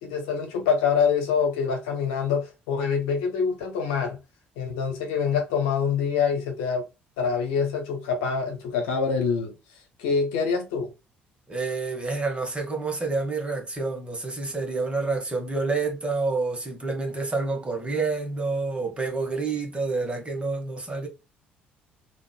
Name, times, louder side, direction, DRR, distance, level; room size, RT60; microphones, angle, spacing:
voice 1, 0.0-4.2 4.6-6.9 7.2-9.5 10.0-10.9, left 6 dB, 70° left, 1.0 m, -25 dB
voice 2, 11.5-21.1, right 3 dB, 20° right, 1.6 m, -28 dB
3.9 x 2.9 x 2.3 m
figure-of-eight pair, 50°, 5 cm